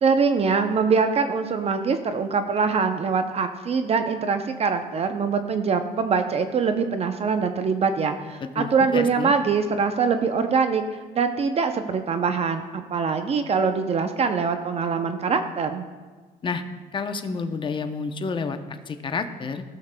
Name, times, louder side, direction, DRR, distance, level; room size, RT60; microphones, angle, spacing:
voice 1, 0.0-10.8 11.1-15.9, right 5 dB, 40° right, 8 dB, 0.5 m, -23 dB
voice 2, 8.4-9.3 16.4-16.6 16.9-19.6, left 4 dB, 30° left, 8 dB, 0.6 m, -30 dB
15.5 x 6.5 x 2.2 m, 1.4 s
cardioid pair, 110°, 17 cm